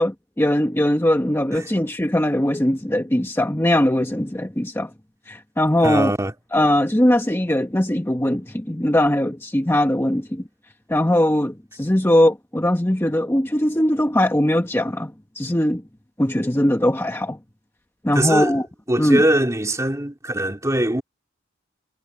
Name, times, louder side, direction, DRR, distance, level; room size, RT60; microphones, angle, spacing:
voice 1, 0.0-4.9 5.3-6.1 6.5-10.4 10.9-15.8 16.2-17.4 18.0-18.7 19.0-19.2, left 1 dB, 15° left, 1.1 m, -20 dB
voice 2, 5.8-6.3 18.1-18.6 18.9-21.0, right 1 dB, 15° right, 2.8 m, -21 dB
head